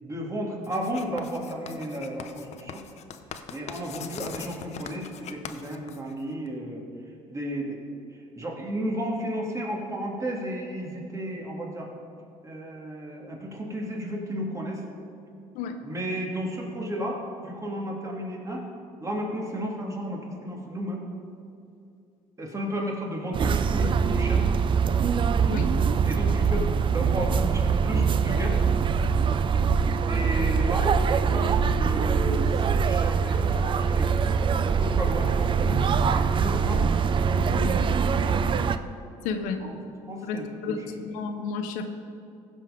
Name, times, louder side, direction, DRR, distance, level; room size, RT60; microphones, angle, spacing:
voice 1, 0.0-2.8 3.5-6.8 7.3-11.9 12.4-14.8 15.8-18.7 19.0-21.1 22.4-24.4 26.0-28.6 30.1-34.2 34.6-38.4 39.6-39.8 40.1-41.0, equal, 25° right, -1 dB, 2.4 m, -33 dB
Writing, 0.6-6.5, left 8 dB, 55° left, 0.7 m, -41 dB
sound 1, 23.3-38.8, right 6 dB, 40° right, 0.5 m, -23 dB
voice 2, 39.2-39.6 40.2-40.8 41.0-41.9, left 5 dB, 80° left, 7 dB, 0.8 m, -31 dB
15.0 x 5.6 x 5.1 m, 2.5 s
supercardioid pair, 85°, 13 cm